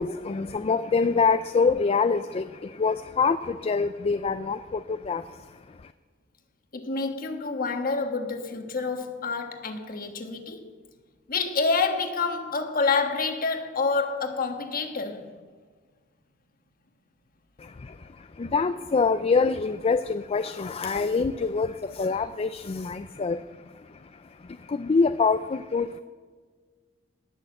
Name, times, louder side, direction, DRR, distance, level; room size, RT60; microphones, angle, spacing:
voice 1, 0.0-5.9 17.6-26.0, left 4 dB, 30° left, 0.4 m, -26 dB
voice 2, 6.7-10.7 11.3-15.3, left 4 dB, 45° left, 1.4 m, -28 dB
19.0 x 6.5 x 7.7 m
head